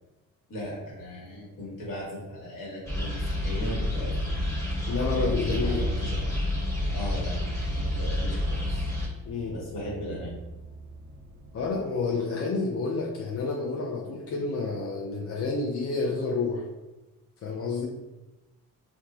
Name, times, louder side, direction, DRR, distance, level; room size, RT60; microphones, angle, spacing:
voice 1, 0.5-4.5 5.1-6.4 6.9-7.4 7.7-8.9 9.5-10.4, equal, 55° left, -4 dB, 1.2 m, -38 dB
sound 1, 2.9-9.1, left 1 dB, 10° left, 1.1 m, -29 dB
sound 2, 3.6-11.7, right 4 dB, 35° right, 0.5 m, -42 dB
voice 2, 4.9-5.9 9.3-9.6 11.5-16.7 17.4-17.9, left 4 dB, 40° left, -1 dB, 0.5 m, -29 dB
2.9 x 2.3 x 2.4 m, 1.0 s
supercardioid pair, 55°, 39 cm